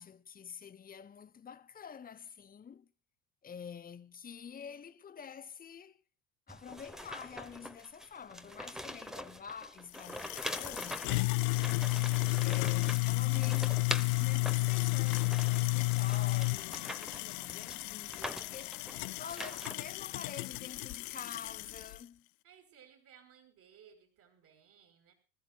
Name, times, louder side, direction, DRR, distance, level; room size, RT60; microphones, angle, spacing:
voice 1, 0.0-2.9 3.4-6.0 6.5-11.3 12.4-22.3, left 7 dB, 20° left, 1.0 m, -48 dB
sound 1, 6.5-19.7, equal, ahead, 1.1 m, -44 dB
sound 2, 9.9-22.0, left 24 dB, 55° left, 0.6 m, -32 dB
voice 2, 11.9-12.3 18.9-19.3 22.4-25.1, right 8 dB, 50° right, 5.0 m, -60 dB
25.5 x 13.5 x 2.4 m
hypercardioid pair, 75°, 43 cm